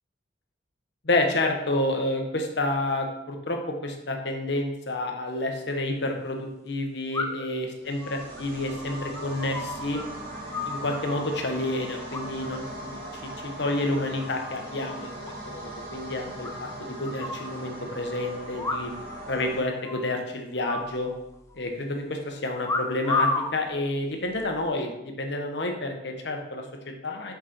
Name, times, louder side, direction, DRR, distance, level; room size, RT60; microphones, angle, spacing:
voice 1, 1.0-10.0 10.7-18.9 19.3-21.1 21.5-27.3, left 2 dB, 65° left, 3 dB, 1.2 m, -29 dB
sound 1, 5.3-5.4 7.1-7.6 8.0-10.0 10.3-11.3 12.1-12.6 12.9-13.3 13.7-14.3 14.6-14.7 14.9-15.0 15.3-15.4 15.7-15.8 16.4-17.5 18.6-19.2 19.4-19.5 19.8-20.2 20.7-21.6 22.6-23.5 24.3-24.6, left 3 dB, 15° left, 0.7 m, -32 dB
sound 2, 7.8-19.6, right 1 dB, 50° right, 2.0 m, -39 dB
7.8 x 5.4 x 4.4 m, 0.88 s
head